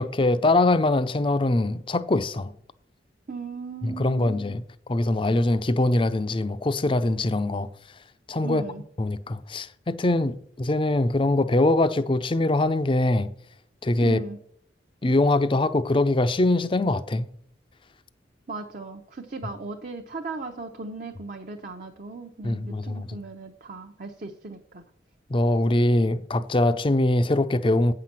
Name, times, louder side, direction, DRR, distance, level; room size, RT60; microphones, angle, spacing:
voice 1, 0.0-2.5 3.8-4.6 4.9-7.7 8.3-8.6 9.0-13.3 13.8-14.2 15.0-17.3 22.4-23.2 25.3-27.9, left 2 dB, 30° left, 0.5 m, -23 dB
voice 2, 3.3-4.3 8.4-8.8 14.0-14.4 18.5-24.8, right 4 dB, 45° right, 0.8 m, -37 dB
8.7 x 5.8 x 7.5 m
head